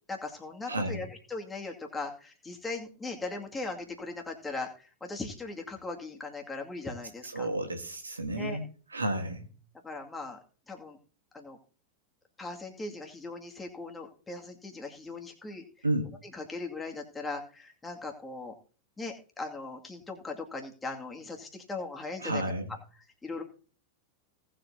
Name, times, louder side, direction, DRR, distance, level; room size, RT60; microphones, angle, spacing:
voice 1, 0.1-7.5 8.3-8.6 9.8-10.4 10.7-11.0 11.3-11.6 12.4-15.9 16.3-18.5 19.0-22.4 23.2-23.4, left 3 dB, 10° left, 1 dB, 2.3 m, -39 dB
voice 2, 0.7-1.0 7.3-9.5 15.8-16.1 22.2-22.7, right 1 dB, 80° right, 6 dB, 1.5 m, -32 dB
18.5 x 7.6 x 2.8 m, 0.39 s
figure-of-eight pair, 90°, 0 cm